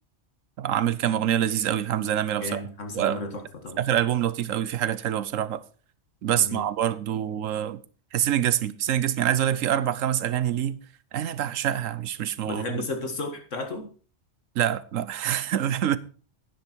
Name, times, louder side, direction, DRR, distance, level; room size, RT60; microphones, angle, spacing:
voice 1, 0.6-2.6 2.9-3.2 3.8-5.6 6.2-7.8 8.1-10.8 11.1-12.8 14.6-16.0, right 10 dB, 85° right, 1.1 m, -25 dB
voice 2, 2.4-3.8 6.3-6.7 12.4-13.9, left 2 dB, 70° left, 2.3 m, -33 dB
11.0 x 9.9 x 4.5 m
omnidirectional pair, 1.3 m